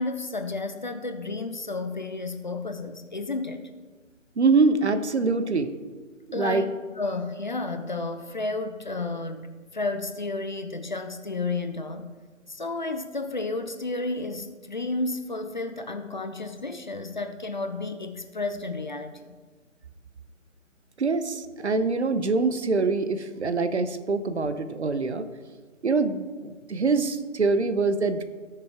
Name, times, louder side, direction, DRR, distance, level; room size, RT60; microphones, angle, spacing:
voice 1, 0.0-3.6 6.3-12.1 12.5-19.2, left 3 dB, 35° left, 7 dB, 0.6 m, -32 dB
voice 2, 4.4-5.7 6.3-6.6 21.0-25.3 25.8-28.2, right 4 dB, 55° right, 11 dB, 0.9 m, -24 dB
17.5 x 6.8 x 3.5 m, 1.4 s
figure-of-eight pair, 150°, 40 cm